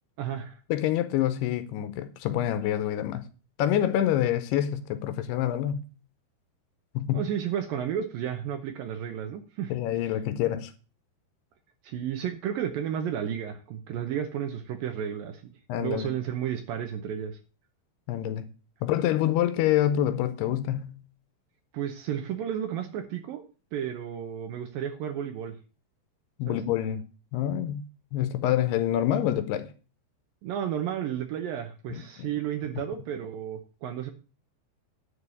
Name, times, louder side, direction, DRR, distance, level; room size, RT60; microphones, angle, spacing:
voice 1, 0.2-0.6 7.1-9.7 11.8-15.5 15.8-17.4 21.7-23.4 23.7-25.6 26.5-26.6 30.4-34.1, right 9 dB, 70° right, 2.3 m, -32 dB
voice 2, 0.7-3.3 3.6-5.9 7.0-7.3 9.7-10.7 15.7-16.1 18.1-18.5 18.8-21.0 26.4-27.0 27.3-29.7 31.9-32.3, left 11 dB, 75° left, 2.7 m, -27 dB
11.0 x 4.7 x 8.3 m
omnidirectional pair, 4.9 m